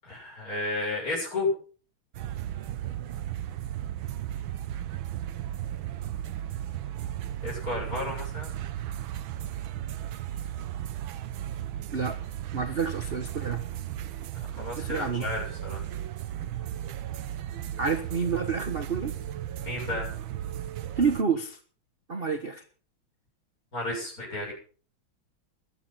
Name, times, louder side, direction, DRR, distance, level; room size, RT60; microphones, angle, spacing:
voice 1, 0.0-1.5 7.4-8.5 14.3-15.8 19.6-20.1 23.7-24.5, left 2 dB, 40° left, -1 dB, 7.8 m, -32 dB
sound 1, 2.1-21.2, right 12 dB, 75° right, 1.6 m, -35 dB
voice 2, 12.5-13.6 14.8-15.3 17.8-19.2 21.0-21.6 22.1-22.6, right 5 dB, 35° right, 7 dB, 1.2 m, -28 dB
15.5 x 11.5 x 5.7 m, 0.40 s
omnidirectional pair, 2.3 m